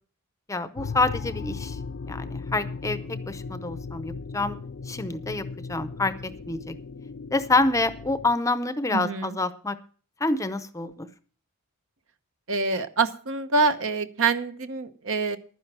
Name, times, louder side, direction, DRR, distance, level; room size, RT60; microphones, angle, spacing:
voice 1, 0.5-1.8 2.1-4.6 4.9-6.7 7.3-9.8 10.2-11.1, left 2 dB, 15° left, 12 dB, 0.6 m, -27 dB
sound 1, 0.8-8.3, left 4 dB, 55° left, 0.5 m, -37 dB
voice 2, 8.9-9.4 12.5-15.4, right 4 dB, 65° right, 10 dB, 1.0 m, -25 dB
11.5 x 10.0 x 6.0 m, 0.42 s
head